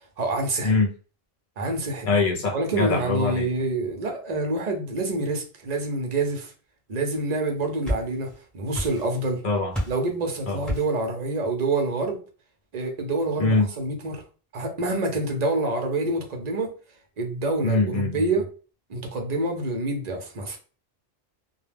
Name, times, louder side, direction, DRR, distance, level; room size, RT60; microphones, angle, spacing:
voice 1, 0.2-0.7 1.6-2.1 2.5-6.5 6.9-9.4 9.9-12.2 12.7-14.2 14.5-16.7 17.2-18.5 18.9-20.6, right 2 dB, 45° right, 0.7 m, -27 dB
voice 2, 2.0-3.5 9.4-9.7 10.5-10.7 13.4-13.7 17.6-18.2, left 3 dB, 55° left, 0.8 m, -23 dB
sound 1, 7.4-8.4 8.7-9.3 9.7-10.1 10.7-11.0, equal, ahead, 0.9 m, -30 dB
2.2 x 2.2 x 3.3 m
omnidirectional pair, 1.1 m